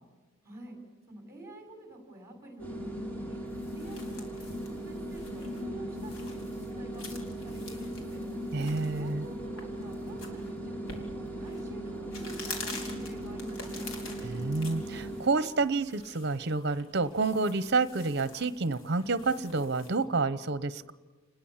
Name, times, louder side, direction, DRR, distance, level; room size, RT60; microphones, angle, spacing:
voice 1, 0.4-0.8 1.1-3.4 3.7-8.2 8.9-11.1 11.4-13.9, right 1 dB, 15° right, 3 dB, 5.9 m, -48 dB
sound 1, 2.6-15.2, right 1 dB, 10° left, 3.0 m, -38 dB
sound 2, 3.3-20.0, left 3 dB, 70° left, 4.5 m, -47 dB
voice 2, 8.5-9.2 14.2-20.9, right 3 dB, 55° right, 15 dB, 0.9 m, -29 dB
30.0 x 21.0 x 7.4 m, 1.3 s
head